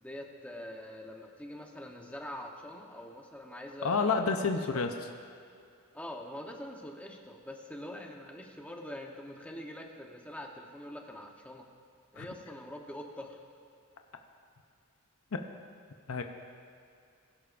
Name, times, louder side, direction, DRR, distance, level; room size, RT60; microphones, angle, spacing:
voice 1, 0.0-4.9 5.9-11.7 12.1-13.4, left 1 dB, 5° left, 1 dB, 1.0 m, -44 dB
voice 2, 3.8-4.9 12.2-12.3 15.3-15.4 16.1-16.2, left 4 dB, 80° left, 5 dB, 0.7 m, -29 dB
21.0 x 11.5 x 2.6 m, 2.4 s
head